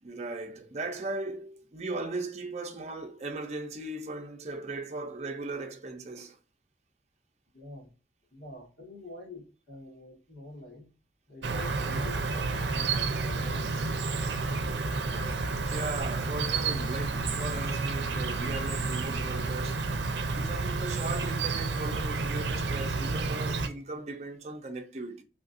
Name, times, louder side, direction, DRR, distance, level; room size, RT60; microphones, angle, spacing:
voice 1, 0.0-6.4 15.6-19.9 20.3-25.2, right 2 dB, 40° right, 0.6 m, -38 dB
voice 2, 7.5-7.9 8.3-10.9 11.3-13.8, left 2 dB, 70° left, 1.7 m, -46 dB
Insect, 11.4-23.7, right 4 dB, 85° right, 0.6 m, -30 dB
3.6 x 2.5 x 2.5 m
head